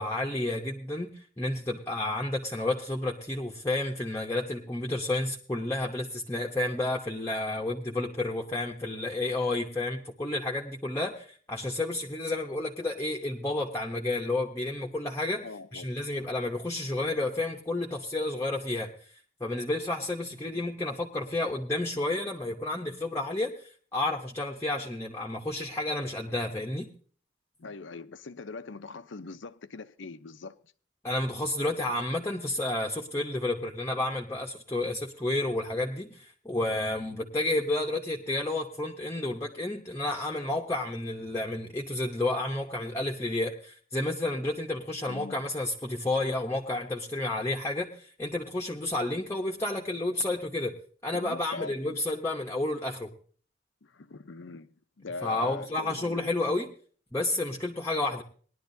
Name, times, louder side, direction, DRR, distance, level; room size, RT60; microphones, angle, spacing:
voice 1, 0.0-15.5 15.7-18.9 19.4-26.9 31.0-50.8 51.0-53.1 55.2-56.7 57.1-58.2, left 2 dB, 15° left, 0.9 m, -31 dB
voice 2, 15.4-15.9 27.6-30.6 45.1-45.4 51.1-52.0 53.8-56.3, left 3 dB, 80° left, 0.7 m, -42 dB
19.5 x 11.0 x 2.7 m
head